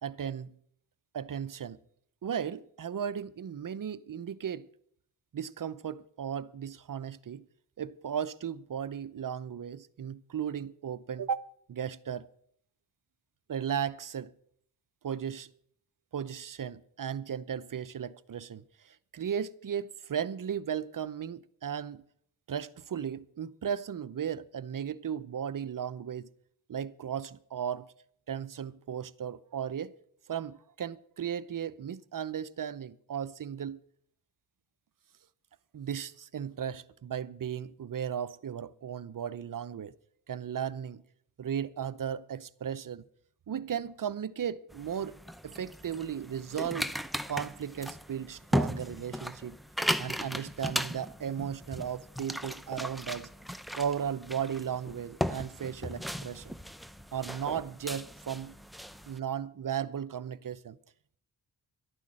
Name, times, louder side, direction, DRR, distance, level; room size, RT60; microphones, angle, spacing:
voice 1, 0.0-0.5 1.1-1.8 2.2-4.7 5.3-7.4 7.8-12.3 13.5-14.3 15.0-15.5 16.1-22.0 22.5-26.3 26.7-27.9 28.3-29.9 30.3-33.8 35.7-39.9 40.3-41.0 41.4-43.0 43.5-46.9 47.2-49.6 50.0-53.3 53.8-56.5 57.1-58.5 59.1-60.8, right 8 dB, 45° right, 0.7 m, -36 dB
sound 1, 44.7-59.2, equal, ahead, 0.6 m, -37 dB
12.0 x 9.4 x 7.5 m
cardioid pair, 65°, 46 cm